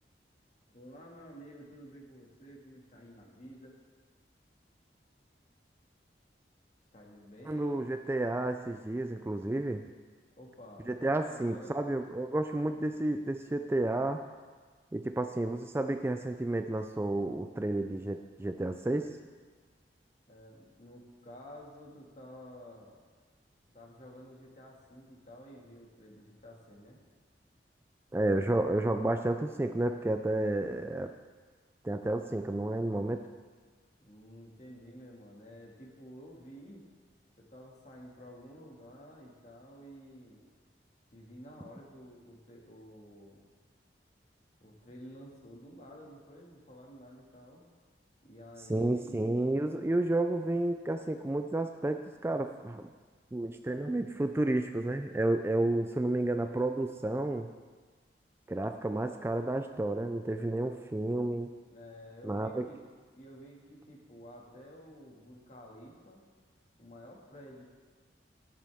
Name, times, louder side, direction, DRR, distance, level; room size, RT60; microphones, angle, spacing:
voice 1, 0.7-3.7 6.9-7.9 10.4-10.9 11.3-11.7 20.3-23.0 23.7-27.0 34.0-36.8 37.4-40.4 41.1-43.4 44.6-47.6 48.2-49.6 61.7-62.8 63.1-66.2 66.8-67.6, equal, 40° left, -2 dB, 2.0 m, -51 dB
voice 2, 7.5-9.8 10.9-14.2 14.9-19.1 28.1-31.1 31.8-33.2 48.7-52.9 53.3-57.5 58.5-61.5 62.2-62.7, right 2 dB, 15° right, 6 dB, 0.3 m, -31 dB
13.0 x 10.5 x 3.5 m, 1.5 s
head